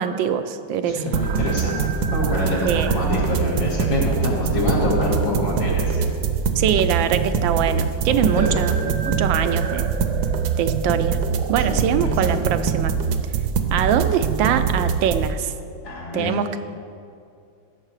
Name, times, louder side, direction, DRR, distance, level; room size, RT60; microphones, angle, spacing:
voice 1, 0.0-1.0 2.6-2.9 6.6-9.9 10.6-11.2 11.5-12.9 13.7-15.5 16.1-16.6, right 8 dB, 85° right, 9 dB, 1.4 m, -23 dB
voice 2, 0.8-6.0 8.1-8.5 11.6-12.4 15.8-16.3, left 1 dB, 80° left, -5 dB, 3.4 m, -25 dB
sound 1, 1.1-15.3, right 6 dB, 65° right, 1.1 m, -23 dB
15.5 x 6.6 x 4.8 m, 2.4 s
omnidirectional pair, 2.0 m